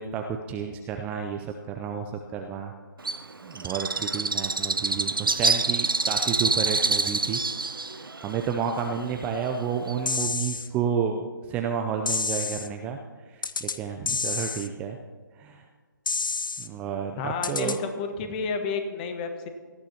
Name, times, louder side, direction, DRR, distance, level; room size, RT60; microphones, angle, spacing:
voice 1, 0.0-2.7 3.0-3.1 3.4-7.4 7.9-13.0 13.3-15.0 15.4-15.7 16.6-17.8, right 7 dB, 10° right, 4 dB, 0.4 m, -31 dB
Bird, 3.0-10.3, right 3 dB, 90° right, 0.6 m, -27 dB
sound 1, 10.1-10.7 12.1-12.7 13.4-13.8 14.1-14.7 16.1-16.7 17.4-17.8, left 4 dB, 70° left, 0.8 m, -29 dB
voice 2, 17.2-19.5, left 5 dB, 25° left, 6 dB, 1.2 m, -31 dB
18.5 x 14.0 x 2.9 m, 1.5 s
figure-of-eight pair, 145°, 11 cm